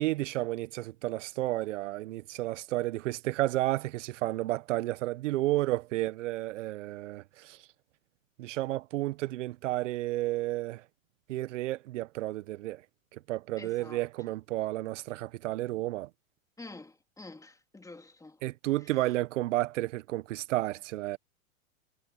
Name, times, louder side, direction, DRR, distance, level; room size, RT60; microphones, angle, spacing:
voice 1, 0.0-7.7 8.4-10.8 11.3-12.8 13.1-16.1 18.4-21.2, right 17 dB, 60° right, 1.4 m, -32 dB
voice 2, 13.6-14.1 16.6-18.4 18.8-19.1, left 2 dB, 10° left, 3.4 m, -48 dB
hypercardioid pair, 105°, 41 cm